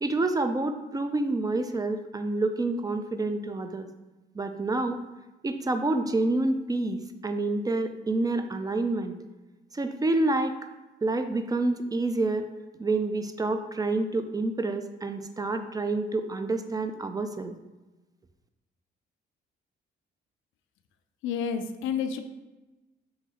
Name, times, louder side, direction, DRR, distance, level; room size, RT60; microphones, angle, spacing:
voice 1, 0.0-3.9 4.3-5.0 5.4-9.2 9.7-10.6 11.0-12.5 12.8-17.5, right 2 dB, 20° right, 7 dB, 0.4 m, -28 dB
voice 2, 21.2-22.2, left 7 dB, 85° left, 8 dB, 0.4 m, -29 dB
4.1 x 3.1 x 3.7 m, 1.1 s
cardioid pair, 90°, 20 cm